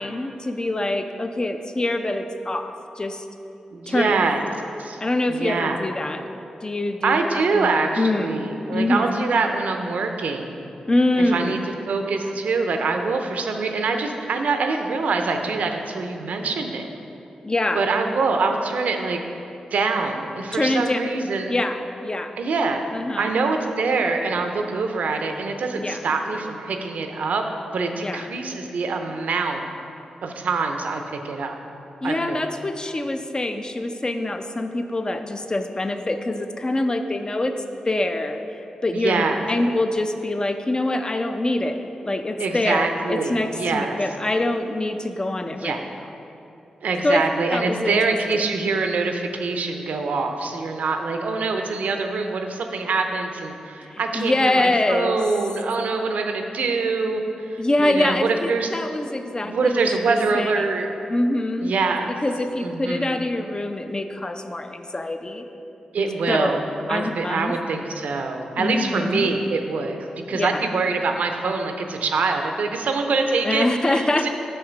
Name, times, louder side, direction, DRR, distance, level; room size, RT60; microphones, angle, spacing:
voice 1, 0.0-3.2 3.9-4.2 5.0-7.2 7.5-7.7 8.0-9.2 10.9-11.5 17.4-17.9 20.5-21.0 21.5-22.3 22.9-23.4 25.8-26.0 28.0-28.4 32.0-45.9 47.0-47.2 47.5-48.0 53.8-55.2 57.6-59.8 60.1-60.7 61.1-61.7 62.1-65.5 66.3-66.5 66.9-67.5 68.6-69.3 70.3-70.5 73.4-74.3, left 2 dB, 30° left, 7 dB, 0.6 m, -25 dB
voice 2, 3.7-4.4 4.8-5.0 5.3-5.8 7.0-10.5 11.2-11.6 11.8-16.9 17.7-19.2 19.7-21.5 22.4-27.4 27.7-29.7 30.2-31.6 32.0-32.4 38.9-39.4 42.4-44.0 45.6-45.8 46.8-57.2 57.5-58.7 59.4-61.0 61.6-62.1 62.6-63.1 65.9-66.6 66.9-74.3, right 4 dB, 75° right, 5 dB, 0.6 m, -24 dB
6.5 x 5.7 x 5.2 m, 2.8 s
supercardioid pair, 40°, 3 cm